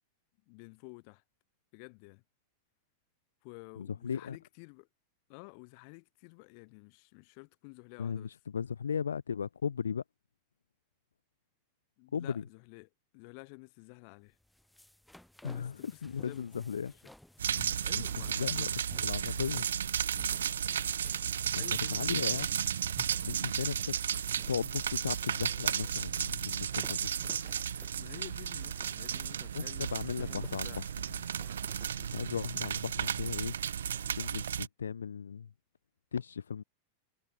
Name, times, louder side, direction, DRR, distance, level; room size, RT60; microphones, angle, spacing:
voice 1, 0.5-1.2 1.7-2.2 3.4-4.9 5.3-8.3 12.0-12.9 13.1-14.4 15.4-16.9 17.8-18.7 21.1-21.3 21.5-22.5 28.0-30.9, left 38 dB, 45° left, 5.8 m, -51 dB
voice 2, 3.8-4.4 8.0-10.0 12.1-12.4 15.4-16.9 17.9-18.0 18.4-18.7 19.0-19.7 21.5-21.6 21.9-22.5 23.2-27.1 29.5-30.8 32.0-33.5 34.2-35.5 36.1-36.6, left 7 dB, 70° left, 0.8 m, -36 dB
sound 1, 14.3-32.7, left 1 dB, 5° left, 4.9 m, -57 dB
sound 2, 17.4-34.7, right 8 dB, 65° right, 0.6 m, -34 dB
sound 3, 22.3-26.7, right 14 dB, 35° right, 2.5 m, -62 dB
figure-of-eight pair, 90°, 0 cm